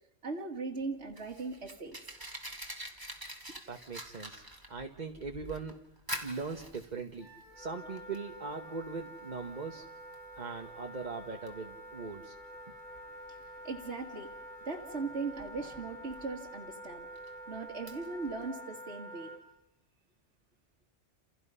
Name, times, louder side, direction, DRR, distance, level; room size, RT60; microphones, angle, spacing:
voice 1, 0.2-2.0 13.3-13.4 13.6-14.3 14.7-17.1 17.5-19.3, right 4 dB, 70° right, 0 dB, 2.2 m, -39 dB
Fire, 0.8-18.5, right 1 dB, 20° right, 2.4 m, -48 dB
voice 2, 3.7-4.4 4.7-5.8 6.2-7.3 7.6-9.8 10.4-12.3, right 4 dB, 40° right, 4 dB, 1.3 m, -40 dB
Wind instrument woodwind instrument, 7.2-19.4, equal, 45° left, 2.8 m, -48 dB
29.0 x 28.5 x 5.6 m, 0.82 s
omnidirectional pair, 1.2 m